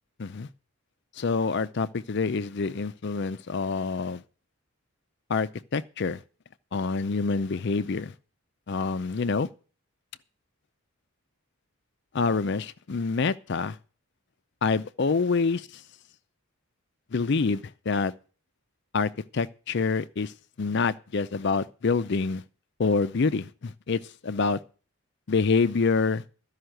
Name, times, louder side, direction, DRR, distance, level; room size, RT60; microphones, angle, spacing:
voice 1, 1.2-4.2 5.3-6.2 6.7-8.1 8.7-9.5 12.1-13.8 14.6-15.7 17.1-18.1 18.9-20.3 20.6-22.4 22.8-24.6 25.3-26.2, left 4 dB, 50° left, 0.5 m, -26 dB
13.0 x 5.6 x 7.8 m
head